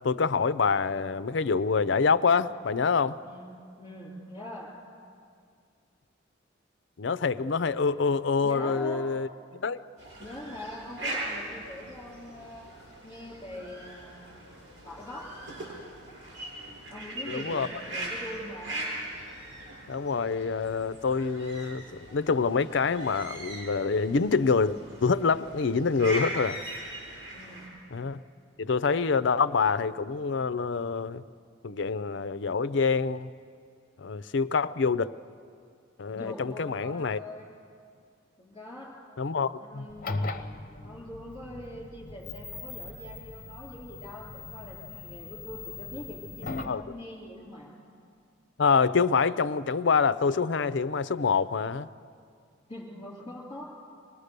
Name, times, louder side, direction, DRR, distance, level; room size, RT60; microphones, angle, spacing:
voice 1, 0.0-3.2 7.0-9.3 9.5-9.8 17.3-17.7 19.9-26.6 27.9-28.2 28.6-31.2 31.6-33.3 34.0-35.1 36.0-37.2 39.2-39.9 46.7-46.8 48.6-51.9, left 5 dB, 65° left, 16 dB, 0.5 m, -26 dB
voice 2, 3.8-4.7 8.4-9.1 10.2-12.7 13.0-14.6 14.8-15.2 16.9-18.8 27.3-27.7 36.1-37.5 38.4-38.9 39.6-40.2 40.8-47.7 52.7-53.6, left 1 dB, 25° left, -3 dB, 4.0 m, -43 dB
sound 1, 10.0-27.7, right 1 dB, 80° right, 7.9 m, -40 dB
sound 2, 39.9-46.8, left 3 dB, 45° left, 0.9 m, -39 dB
25.0 x 20.0 x 6.7 m, 2.3 s
head